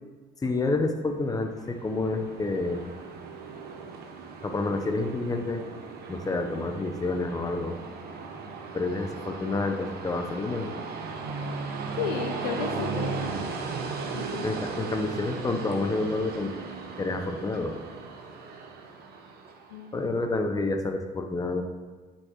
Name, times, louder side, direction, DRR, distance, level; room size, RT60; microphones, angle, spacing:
voice 1, 0.4-2.8 4.4-5.6 6.1-7.8 8.7-10.8 14.4-16.5 17.0-17.7 19.9-21.6, left 2 dB, 15° left, 5 dB, 0.8 m, -29 dB
Train, 1.2-19.9, right 4 dB, 50° right, 1.1 m, -37 dB
voice 2, 12.0-13.3 14.1-14.4 19.7-20.1, left 8 dB, 75° left, 4 dB, 0.5 m, -33 dB
9.6 x 7.1 x 3.1 m, 1.4 s
figure-of-eight pair, 55°, 21 cm